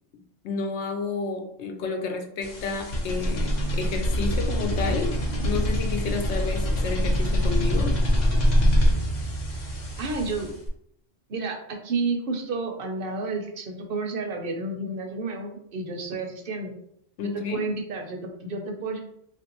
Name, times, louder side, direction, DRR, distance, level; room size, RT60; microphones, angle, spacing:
voice 1, 0.4-8.0 17.2-17.7, left 4 dB, 85° left, 4 dB, 0.9 m, -31 dB
sound 1, 2.4-10.7, equal, 45° left, 0.7 m, -24 dB
voice 2, 10.0-10.5 11.3-16.7 17.2-19.0, right 3 dB, 60° right, 3 dB, 0.7 m, -31 dB
3.1 x 2.5 x 2.8 m, 0.70 s
omnidirectional pair, 1.1 m